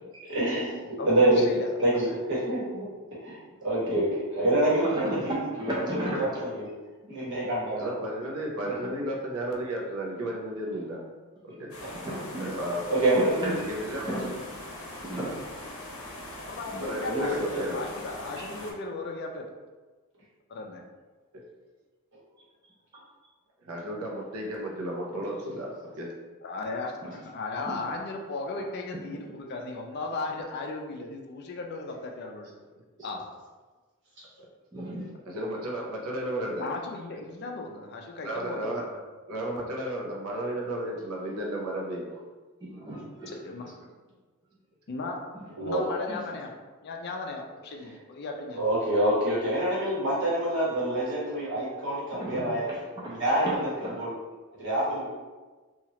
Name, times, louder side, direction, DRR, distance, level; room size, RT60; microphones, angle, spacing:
voice 1, 0.3-1.4 1.8-6.7 7.1-7.9 8.6-8.9 11.8-12.2 12.9-13.5 16.7-17.6 34.2-34.3 45.6-45.9 48.6-52.7 53.0-53.7 54.0-54.1 54.6-55.1, right 1 dB, 55° right, -7 dB, 1.1 m, -27 dB
voice 2, 1.4-1.7 16.5-17.5 17.7-19.5 20.5-20.8 26.4-32.5 33.0-33.2 36.6-39.0 43.4-43.8 44.9-45.2 45.6-46.5 46.8-48.6, left 3 dB, 45° left, 2 dB, 0.3 m, -36 dB
voice 3, 4.8-6.3 11.9-12.5 13.4-13.5 14.0-14.3 15.0-15.3 18.4-18.5 22.9-23.0 27.1-27.2 27.7-27.8 34.7-35.1 42.6-43.3 46.1-46.2 52.1-53.1 53.8-54.0, right 1 dB, 20° right, -6 dB, 0.4 m, -35 dB
voice 4, 7.7-11.0 11.4-11.7 12.4-13.0 13.5-14.2 15.0-15.1 16.8-17.9 23.7-26.1 34.4-34.5 35.3-36.7 38.2-38.9 39.3-42.2, right 1 dB, 75° right, -1 dB, 0.6 m, -33 dB
sound 1, 11.7-18.7, left 1 dB, 65° left, 0.7 m, -41 dB
2.9 x 2.3 x 2.8 m, 1.3 s
head